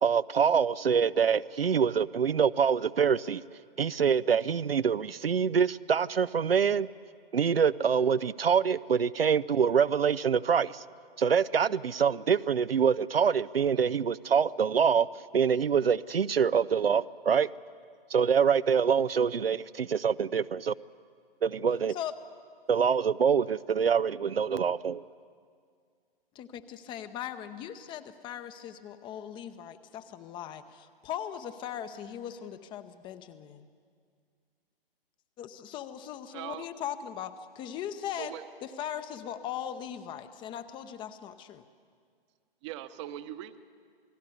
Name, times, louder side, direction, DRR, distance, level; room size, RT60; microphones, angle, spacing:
voice 1, 0.0-3.4 3.8-6.9 7.3-10.8 11.2-15.1 15.3-17.5 18.1-20.7 21.4-22.0 22.7-25.0, right 7 dB, 80° right, 0.6 m, -25 dB
voice 2, 26.3-33.7 35.4-38.3 38.6-41.6, left 10 dB, 15° left, 0.7 m, -39 dB
voice 3, 36.3-36.7 38.2-38.5 42.6-43.6, right 12 dB, 30° right, 1.0 m, -40 dB
28.0 x 19.0 x 8.2 m
figure-of-eight pair, 115°, 29 cm